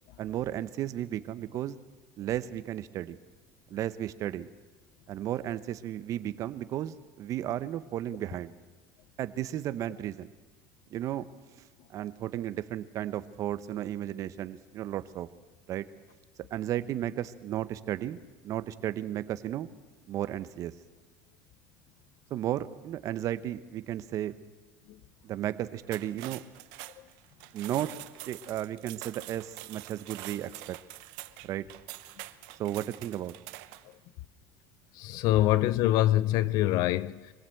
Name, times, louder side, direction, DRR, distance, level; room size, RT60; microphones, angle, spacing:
voice 1, 0.2-1.8 2.2-3.2 3.7-4.5 5.1-8.5 9.2-10.3 10.9-11.2 11.9-15.3 15.7-15.9 16.5-19.7 20.1-20.7 22.3-24.3 25.2-26.4 27.5-27.9 28.3-30.8 31.4-31.7 32.6-33.3, right 12 dB, 50° right, 1.1 m, -34 dB
sound 1, 25.8-33.9, right 18 dB, 75° right, 0.9 m, -45 dB
voice 2, 34.9-37.3, left 14 dB, 65° left, 0.8 m, -25 dB
24.5 x 17.0 x 7.9 m
supercardioid pair, 110°, 7 cm